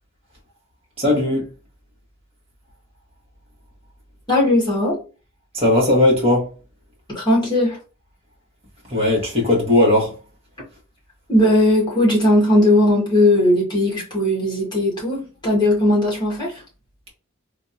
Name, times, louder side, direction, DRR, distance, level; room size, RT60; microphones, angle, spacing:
voice 1, 1.0-1.5 5.5-6.5 8.9-10.1, left 1 dB, 30° right, 1.4 m, -17 dB
voice 2, 4.3-5.0 7.1-7.8 11.3-15.2 15.4-16.6, left 1 dB, 20° left, 1.7 m, -17 dB
3.6 x 2.7 x 2.7 m
head